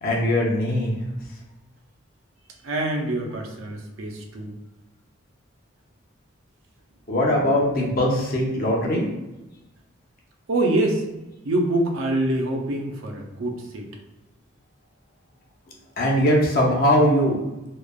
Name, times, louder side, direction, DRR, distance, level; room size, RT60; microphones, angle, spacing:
voice 1, 0.0-0.9 7.1-9.0 16.0-17.4, equal, 45° left, -1 dB, 0.5 m, -20 dB
voice 2, 2.6-4.6 10.5-11.0 11.4-13.9, right 1 dB, 80° right, 1 dB, 0.5 m, -25 dB
3.0 x 2.1 x 2.3 m, 0.98 s
head